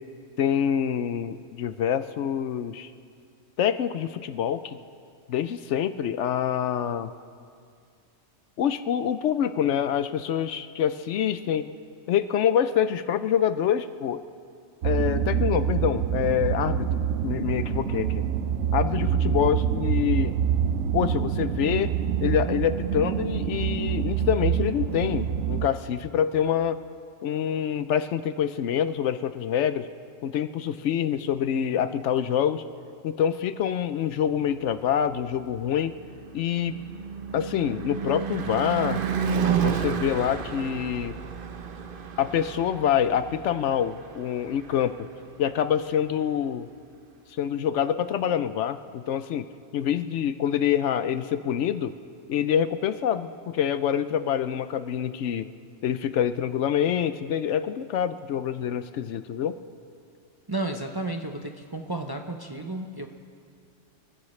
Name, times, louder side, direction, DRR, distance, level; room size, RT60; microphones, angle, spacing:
voice 1, 0.4-2.9 3.6-4.8 5.3-7.1 8.6-11.7 12.1-14.2 14.8-18.3 18.7-20.3 20.9-21.9 22.2-26.8 27.2-29.9 30.2-32.6 33.0-35.9 36.3-36.8 37.3-39.0 39.6-41.2 42.2-45.1 45.4-46.7 47.4-49.4 49.7-51.9 52.3-55.5 55.8-59.6, left 9 dB, 70° left, 12 dB, 0.8 m, -26 dB
sound 1, 14.8-25.7, right 8 dB, 90° right, 1.1 m, -26 dB
Car passing by / Truck / Engine, 35.4-45.6, right 7 dB, 50° right, 0.8 m, -32 dB
voice 2, 60.5-63.1, right 2 dB, 25° right, 4 dB, 0.6 m, -32 dB
28.5 x 15.0 x 3.2 m, 2.4 s
omnidirectional pair, 1.3 m